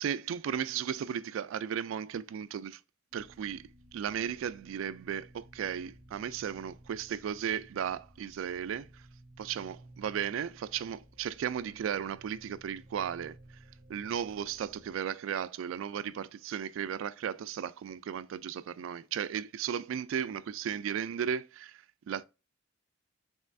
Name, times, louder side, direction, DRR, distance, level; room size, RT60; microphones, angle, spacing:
voice 1, 0.0-2.8 3.1-9.1 9.4-13.6 13.9-22.2, right 8 dB, 90° right, 0.3 m, -35 dB
sound 1, 3.1-15.0, right 1 dB, 35° right, 1.6 m, -56 dB
5.4 x 3.1 x 2.6 m
head